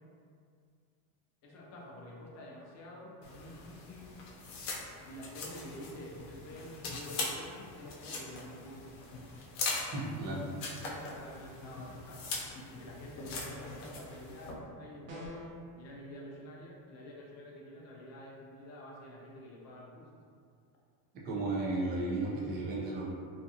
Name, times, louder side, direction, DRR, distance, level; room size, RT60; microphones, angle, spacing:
voice 1, 1.4-4.1 5.0-8.9 10.8-12.3 12.7-15.4 15.7-20.1, left 1 dB, 35° left, -3 dB, 0.5 m, -48 dB
sound 1, 3.2-14.5, left 3 dB, 75° left, 0.7 m, -41 dB
voice 2, 9.9-10.5 21.2-23.1, right 2 dB, 25° right, -6 dB, 0.4 m, -34 dB
sound 2, 15.1-15.6, equal, 90° right, 0.8 m, -45 dB
2.5 x 2.3 x 2.7 m, 2.2 s
cardioid pair, 145°, 46 cm